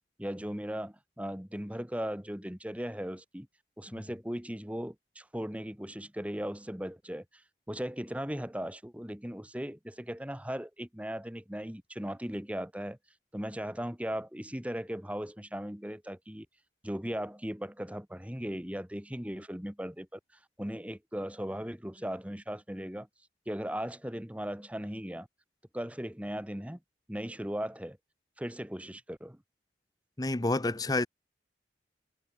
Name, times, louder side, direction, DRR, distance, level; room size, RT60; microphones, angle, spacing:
voice 1, 0.2-3.5 3.8-7.4 7.7-13.0 13.3-16.5 16.8-20.2 20.6-23.1 23.4-25.3 25.7-26.8 27.1-28.0 28.4-29.4, equal, 10° right, 1.6 m, -37 dB
voice 2, 30.2-31.1, left 2 dB, 20° left, 0.8 m, -29 dB
head